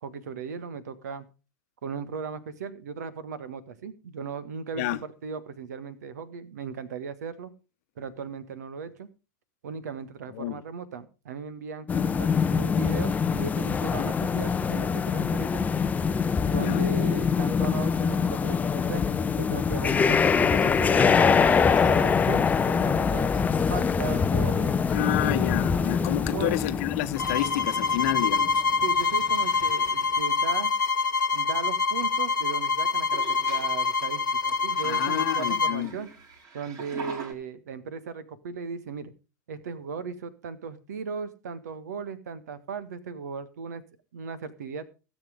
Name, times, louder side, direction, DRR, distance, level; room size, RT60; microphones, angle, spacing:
voice 1, 0.0-1.3 1.8-7.5 8.0-9.1 9.6-15.6 16.4-23.3 23.7-25.5 26.3-26.6 28.8-30.7 31.3-36.1 36.5-39.1 39.5-43.8 44.1-44.8, right 5 dB, 60° right, 1.6 m, -37 dB
sound 1, 11.9-28.5 29.0-29.1 29.6-29.7, left 6 dB, 15° left, 0.7 m, -24 dB
voice 2, 16.5-16.9 24.9-28.6 34.8-35.9, left 15 dB, 50° left, 1.1 m, -29 dB
sound 2, 20.4-24.5 24.9-25.3 26.3-26.4 26.9-27.3 27.6-27.9 29.9-30.0 33.0-37.3, right 5 dB, 35° right, 3.8 m, -47 dB
sound 3, 27.2-35.8, left 4 dB, 80° left, 1.0 m, -26 dB
17.0 x 7.9 x 5.1 m
figure-of-eight pair, 90°, 10 cm